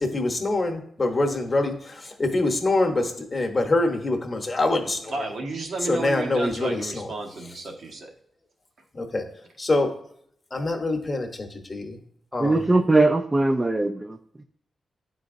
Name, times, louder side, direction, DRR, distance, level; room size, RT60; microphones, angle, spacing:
voice 1, 0.0-5.3 5.8-7.1 8.9-9.2 9.6-9.9 10.5-12.0 12.3-12.6, left 2 dB, 30° left, 4 dB, 0.9 m, -25 dB
voice 2, 5.1-8.1, right 3 dB, 70° right, 2 dB, 1.0 m, -32 dB
voice 3, 12.4-14.4, right 2 dB, 20° right, 6 dB, 0.3 m, -21 dB
9.6 x 3.9 x 2.5 m, 0.66 s
wide cardioid pair, 110°, 0 cm